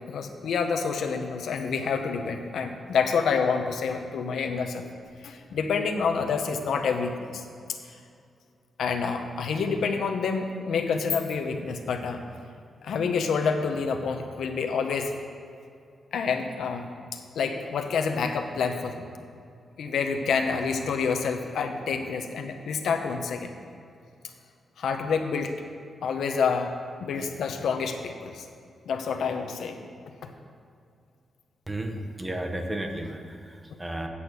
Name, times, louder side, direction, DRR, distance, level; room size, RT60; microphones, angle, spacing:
voice 1, 0.1-4.8 5.2-7.4 8.8-12.2 12.8-15.1 16.1-19.1 19.8-23.5 24.8-25.6 26.0-28.4 28.9-29.8, left 5 dB, 85° left, 5 dB, 0.8 m, -28 dB
voice 2, 31.7-34.1, right 1 dB, 15° right, 4 dB, 0.8 m, -33 dB
8.5 x 7.0 x 6.1 m, 2.4 s
wide cardioid pair, 160°, 0 cm